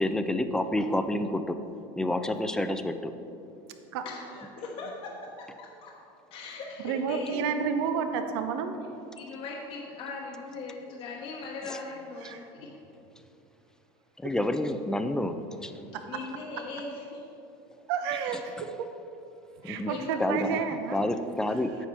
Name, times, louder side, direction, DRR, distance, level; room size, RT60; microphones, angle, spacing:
voice 1, 0.0-1.6 2.0-3.1 11.6-11.8 14.2-15.7 19.6-19.9 20.2-20.6 20.9-21.7, left 1 dB, 5° left, 9 dB, 0.3 m, -29 dB
voice 2, 4.0-5.9 6.3-7.4 9.2-12.7 16.1-17.2 18.2-18.4 19.9-20.6, left 3 dB, 50° left, -2 dB, 0.9 m, -40 dB
voice 3, 6.8-8.7 12.2-12.4 17.9-18.5 18.8-18.9 19.6-21.0, right 6 dB, 85° right, 7 dB, 0.7 m, -30 dB
9.0 x 5.8 x 4.4 m, 2.8 s
cardioid pair, 140°, 13 cm